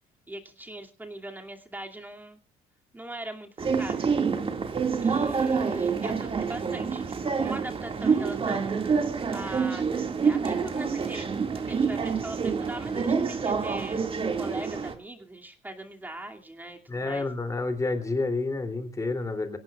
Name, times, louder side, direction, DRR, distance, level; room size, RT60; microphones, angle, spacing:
voice 1, 0.3-2.4 2.9-4.4 5.0-7.0 7.3-8.7 9.3-9.8 10.2-11.3 11.5-14.0 14.4-17.3, right 1 dB, 10° right, 2 dB, 2.5 m, -40 dB
sound 1, 3.6-14.9, right 5 dB, 30° right, 2.1 m, -27 dB
voice 2, 16.9-19.6, left 3 dB, 20° left, 7 dB, 3.1 m, -29 dB
25.0 x 17.5 x 2.4 m, 0.35 s
cardioid pair, 110°, 17 cm